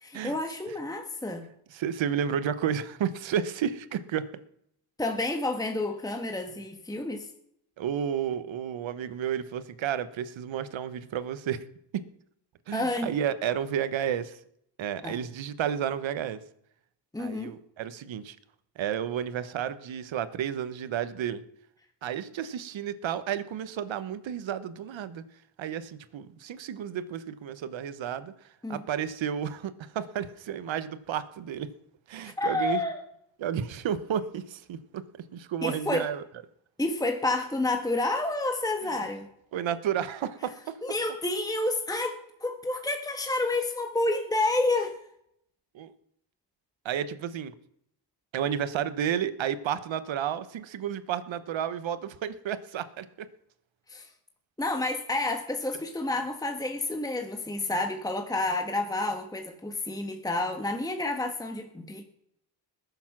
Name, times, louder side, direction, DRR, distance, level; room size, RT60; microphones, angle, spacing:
voice 1, 0.0-1.4 5.0-7.3 12.7-13.1 15.0-15.2 17.1-17.5 28.6-28.8 32.2-33.0 35.6-36.1 36.8-39.3 40.8-45.0 53.9-54.1 54.6-62.0, left 2 dB, 10° left, 5 dB, 1.4 m, -29 dB
voice 2, 1.7-4.3 7.8-11.7 12.7-14.4 14.8-16.4 17.2-18.4 18.8-21.4 22.0-25.2 25.6-31.7 32.1-32.8 33.4-35.0 35.3-36.2 38.8-38.9 39.5-40.8 45.7-45.9 46.8-47.5 48.3-53.3, right 9 dB, 80° right, 13 dB, 1.1 m, -32 dB
20.5 x 7.0 x 6.0 m, 0.74 s
cardioid pair, 95°, 45 cm